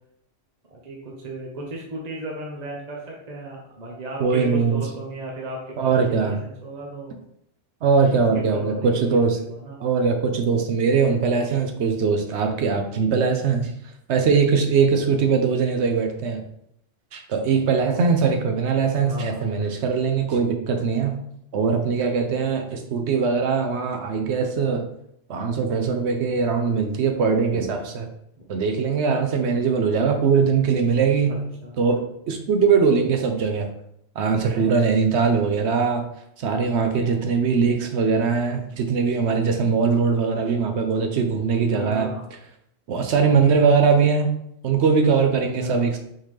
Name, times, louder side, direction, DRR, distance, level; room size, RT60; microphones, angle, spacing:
voice 1, 0.7-7.2 8.5-9.8 19.0-19.7 26.3-26.4 31.3-31.8 41.7-42.3 45.6-45.9, right 1 dB, 40° right, -1 dB, 0.8 m, -35 dB
voice 2, 4.2-4.8 5.8-6.4 7.8-9.4 9.8-13.7 14.1-16.4 17.1-21.2 21.5-24.9 25.3-28.1 28.5-31.4 31.8-33.7 34.2-36.1 36.4-42.1 42.9-44.3 44.6-46.0, right 5 dB, 70° right, 5 dB, 0.9 m, -21 dB
4.5 x 3.7 x 3.2 m, 0.73 s
omnidirectional pair, 1.3 m